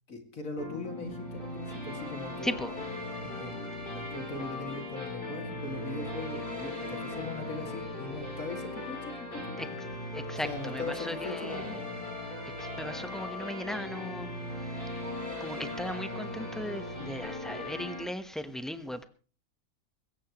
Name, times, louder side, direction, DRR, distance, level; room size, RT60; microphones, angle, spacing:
voice 1, 0.1-2.5 3.2-3.6 3.8-9.6 10.3-11.8, left 2 dB, 70° left, 2.8 m, -40 dB
sound 1, 0.6-18.0, left 2 dB, 40° left, 5.9 m, -38 dB
voice 2, 2.4-2.7 9.6-9.7 10.1-11.8 12.4-14.3 14.6-14.7 15.4-19.1, equal, ahead, 1.0 m, -37 dB
21.0 x 17.0 x 3.1 m
omnidirectional pair, 1.5 m